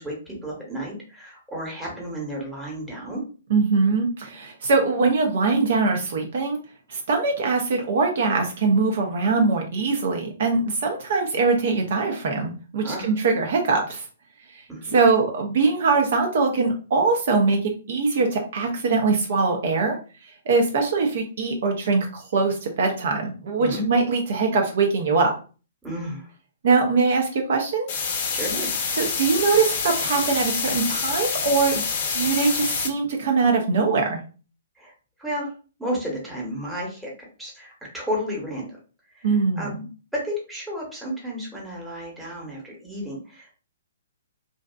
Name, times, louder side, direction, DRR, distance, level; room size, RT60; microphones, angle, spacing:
voice 1, 0.0-3.2 12.8-13.1 14.7-14.9 23.6-23.9 25.8-26.3 28.3-28.8 34.8-34.9 35.2-35.5 35.8-37.1 37.4-38.7 39.1-39.9 40.1-43.5, equal, 5° right, -4 dB, 1.0 m, -32 dB
voice 2, 3.5-6.6 6.9-14.0 14.5-14.6 14.9-20.0 20.2-25.3 26.6-27.9 28.9-31.8 32.1-34.2 39.2-39.7, right 4 dB, 55° right, 2 dB, 0.5 m, -22 dB
sound 1, 27.9-32.9, left 5 dB, 45° left, 0.6 m, -27 dB
2.6 x 2.3 x 2.2 m, 0.36 s
figure-of-eight pair, 120°, 0 cm